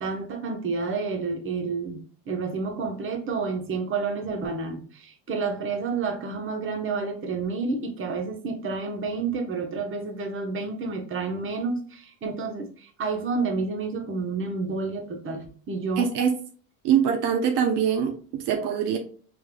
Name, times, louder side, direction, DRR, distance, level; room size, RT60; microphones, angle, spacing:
voice 1, 0.0-2.0 2.3-16.1, right 4 dB, 30° right, 3 dB, 1.0 m, -30 dB
voice 2, 16.0-16.3 16.8-19.0, right 8 dB, 65° right, 4 dB, 0.8 m, -23 dB
4.4 x 3.4 x 2.2 m, 0.43 s
supercardioid pair, 105°, 43 cm